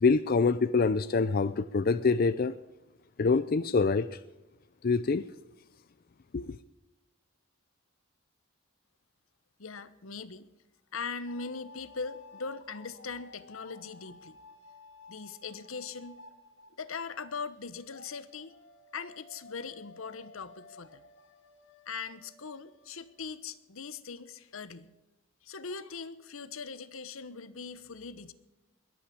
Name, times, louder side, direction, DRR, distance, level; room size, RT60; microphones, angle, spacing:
voice 1, 0.0-2.5 3.2-4.2 4.8-5.2 6.3-6.6, left 4 dB, 45° left, 0.4 m, -25 dB
voice 2, 9.6-10.5 10.9-14.4 15.1-16.2 16.8-18.5 18.9-21.0 21.9-24.9 25.4-28.3, left 5 dB, 80° left, 1.0 m, -40 dB
sound 1, 11.3-17.1 17.4-23.4, left 3 dB, 60° left, 1.7 m, -54 dB
21.5 x 8.8 x 7.1 m
head